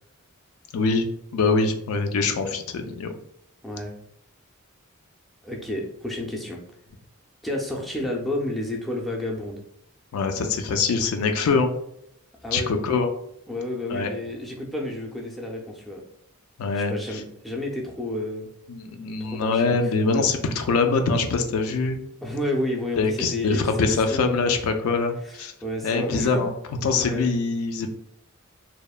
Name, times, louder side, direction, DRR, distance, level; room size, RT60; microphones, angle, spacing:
voice 1, 0.7-1.0 1.3-3.1 10.1-11.7 12.5-13.1 13.9-14.1 16.6-16.9 18.7-22.0 23.0-25.5 25.8-26.5 26.8-27.9, left 4 dB, 85° left, 6 dB, 0.4 m, -23 dB
voice 2, 3.6-3.9 5.4-6.6 7.4-9.6 12.4-12.7 13.5-16.0 16.7-18.5 19.2-20.3 22.2-24.6 25.2-26.4 27.0-27.3, left 1 dB, ahead, -2 dB, 0.4 m, -31 dB
2.9 x 2.0 x 2.3 m, 0.72 s
head